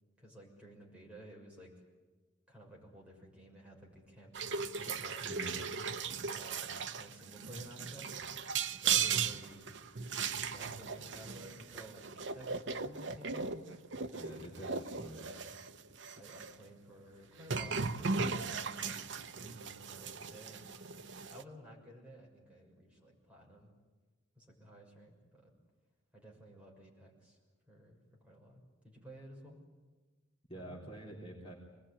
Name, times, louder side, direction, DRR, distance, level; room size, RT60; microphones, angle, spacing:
voice 1, 0.2-1.7 2.5-5.7 6.3-8.2 8.8-9.7 10.5-13.6 14.1-15.6 16.1-19.0 19.4-20.9 21.3-23.7 24.3-25.5 26.1-27.4 27.7-29.6 30.5-30.8, equal, 5° right, -3 dB, 6.3 m, -54 dB
sound 1, 4.3-16.5 17.4-21.4, right 6 dB, 65° right, 0.9 m, -37 dB
voice 2, 5.2-5.6 14.2-15.2 30.5-31.5, right 1 dB, 25° left, -3 dB, 3.6 m, -47 dB
26.0 x 20.5 x 10.0 m, 1.2 s
head